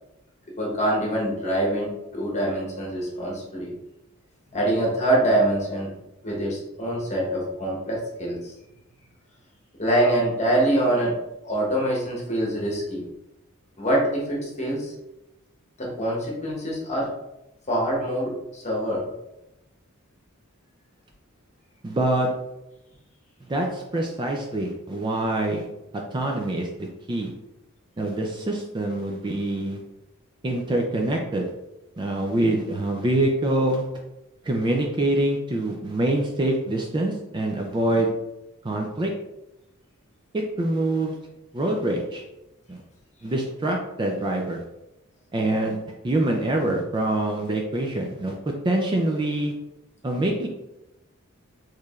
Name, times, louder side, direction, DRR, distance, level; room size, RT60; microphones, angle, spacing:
voice 1, 0.5-3.7 4.5-5.9 6.2-8.5 9.8-11.2 11.4-13.1 13.8-14.9 15.8-17.1 17.7-19.1, right 1 dB, 30° left, -3 dB, 1.0 m, -25 dB
voice 2, 21.8-22.3 23.5-25.7 26.1-27.3 28.0-29.8 30.4-31.5 32.0-33.8 34.4-38.1 38.6-39.1 40.3-41.2 41.5-42.2 42.7-42.8 43.2-44.6 45.3-45.8 46.0-48.4 48.6-49.5 50.0-50.5, right 1 dB, 20° right, 1 dB, 0.3 m, -25 dB
4.6 x 3.1 x 2.4 m, 0.92 s
head